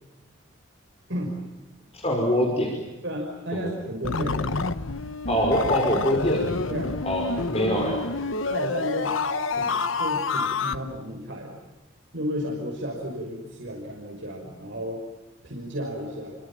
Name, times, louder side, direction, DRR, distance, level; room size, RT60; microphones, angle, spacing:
voice 1, 1.9-2.9 3.5-3.7 5.3-6.5 7.0-8.0, equal, 30° left, 1 dB, 5.4 m, -24 dB
voice 2, 3.0-4.5 6.7-7.0 8.5-9.1 9.5-11.6 12.1-15.0 15.4-16.3, equal, 60° right, 0 dB, 5.9 m, -33 dB
sound 1, 4.0-10.8, left 4 dB, 75° left, 1.1 m, -28 dB
29.0 x 25.0 x 7.4 m, 1.1 s
head